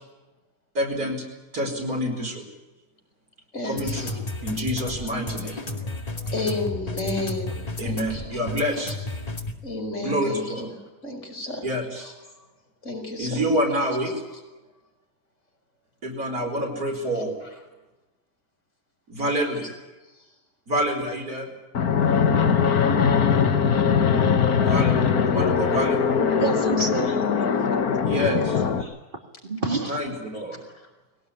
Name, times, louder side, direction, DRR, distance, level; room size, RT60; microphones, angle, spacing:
voice 1, 0.8-1.2 1.5-2.4 3.6-4.1 4.4-5.6 7.8-9.2 10.0-10.7 11.6-12.0 13.2-14.1 16.0-17.4 19.1-19.7 20.7-21.5 24.6-26.1 28.0-28.6 29.9-30.6, equal, 85° right, 3 dB, 5.4 m, -27 dB
voice 2, 3.5-4.1 6.3-8.4 9.6-10.7 11.0-11.7 12.0-12.1 12.8-13.4 19.6-19.7 20.2-20.3 27.1-27.2 28.8-28.9, left 2 dB, 55° left, 2 dB, 5.9 m, -32 dB
sound 1, 3.8-9.5, left 2 dB, 25° left, 2.3 m, -32 dB
Fixed-wing aircraft airplane, 21.7-28.8, left 6 dB, 90° left, 1.9 m, -21 dB
voice 3, 26.4-27.4 27.7-28.5 29.4-30.2, right 4 dB, 35° right, 3 dB, 2.7 m, -29 dB
21.5 x 18.0 x 9.9 m, 1.1 s
omnidirectional pair, 1.5 m